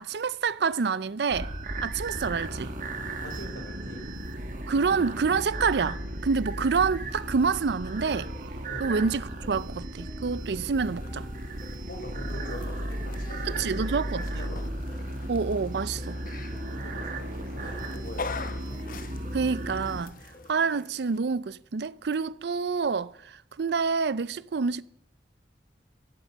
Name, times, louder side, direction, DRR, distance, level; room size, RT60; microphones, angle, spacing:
voice 1, 0.0-1.5 1.8-2.7 4.7-8.3 8.8-11.3 13.5-14.3 15.3-16.2 19.3-20.2 20.5-24.8, right 5 dB, 65° right, 0.5 m, -27 dB
sound 1, 1.3-20.0, right 1 dB, 50° right, 1.8 m, -35 dB
voice 2, 3.2-4.1 8.7-8.9 11.9-14.7 16.7-18.7, equal, 70° left, 3.9 m, -43 dB
sound 2, 8.2-20.5, equal, 20° left, 3.6 m, -52 dB
sound 3, 10.8-21.2, left 5 dB, 50° left, 0.8 m, -45 dB
15.0 x 8.7 x 7.3 m
head